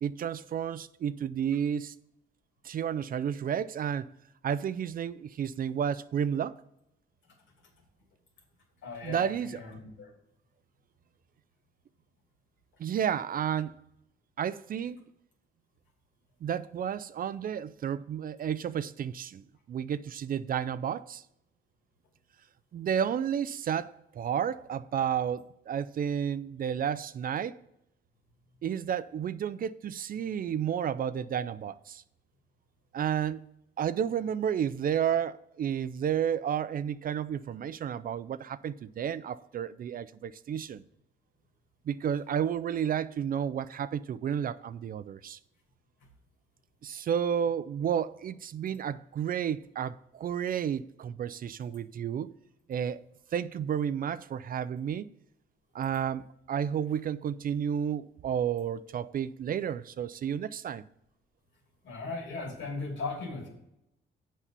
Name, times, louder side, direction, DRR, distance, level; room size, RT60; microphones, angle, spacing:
voice 1, 0.0-2.0 2.6-4.1 4.4-6.5 9.0-9.5 12.8-13.8 14.4-15.0 16.4-21.2 22.7-27.6 28.6-32.0 32.9-33.4 33.8-40.8 41.9-45.4 46.8-52.3 52.7-53.0 53.3-55.1 55.7-60.8, right 8 dB, 45° right, 0.4 m, -31 dB
voice 2, 8.8-10.1 61.8-63.5, left 3 dB, 70° left, 2.6 m, -37 dB
7.4 x 5.5 x 6.7 m
cardioid pair, 90°, 20 cm